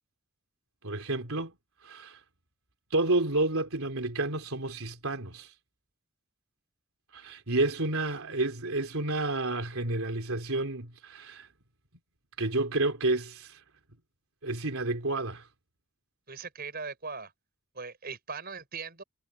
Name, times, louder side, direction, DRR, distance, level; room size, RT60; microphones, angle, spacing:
voice 1, 0.8-1.5 1.8-2.2 2.9-5.5 7.1-11.5 12.4-13.6 14.4-15.5, right 2 dB, 80° right, 3.3 m, -30 dB
voice 2, 16.3-17.3 17.7-19.0, right 5 dB, 45° right, 6.0 m, -39 dB
head